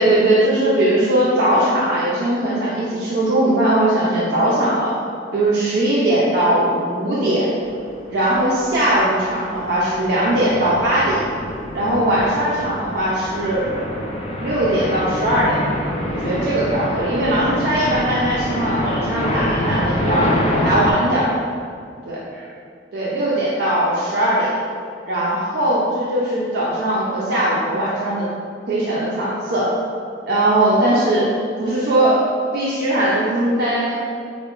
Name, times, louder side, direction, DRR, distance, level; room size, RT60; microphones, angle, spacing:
voice 1, 0.0-4.9 5.3-7.5 8.1-11.2 11.7-13.7 14.4-15.6 16.1-20.3 20.6-21.3 22.1-22.2 22.9-24.5 25.0-28.3 28.7-29.7 30.3-32.2 32.5-34.0, right 1 dB, 65° right, -7 dB, 0.4 m, -19 dB
sound 1, 7.9-8.1 8.6-20.9, left 1 dB, 35° left, 0.3 m, -26 dB
4.6 x 2.1 x 2.4 m, 2.3 s
head